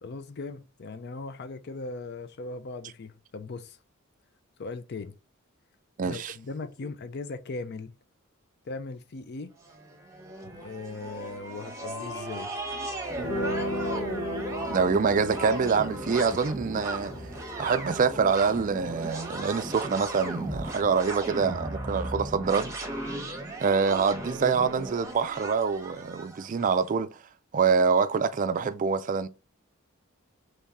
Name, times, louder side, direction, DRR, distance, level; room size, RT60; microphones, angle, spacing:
voice 1, 0.0-3.8 4.6-5.2 6.0-7.9 8.6-9.5 10.4-12.5, left 3 dB, 50° left, 0.5 m, -38 dB
voice 2, 6.0-6.3 14.6-17.1 17.6-22.7 23.6-27.2 27.5-29.3, right 5 dB, 40° right, 0.3 m, -25 dB
sound 1, 9.6-26.7, right 1 dB, 15° right, 0.9 m, -36 dB
sound 2, 13.1-20.9, equal, 80° left, 1.2 m, -37 dB
3.6 x 3.2 x 4.1 m
head